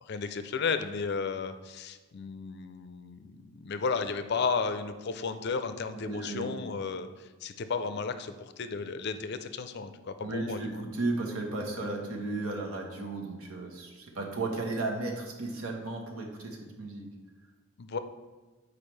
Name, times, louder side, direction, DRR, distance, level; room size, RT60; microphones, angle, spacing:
voice 1, 0.0-10.9 17.8-18.0, left 5 dB, 50° left, 10 dB, 0.4 m, -34 dB
voice 2, 6.0-6.5 10.2-13.9 14.1-17.1, right 2 dB, 85° right, 0 dB, 1.2 m, -34 dB
8.7 x 4.7 x 3.2 m, 1.3 s
head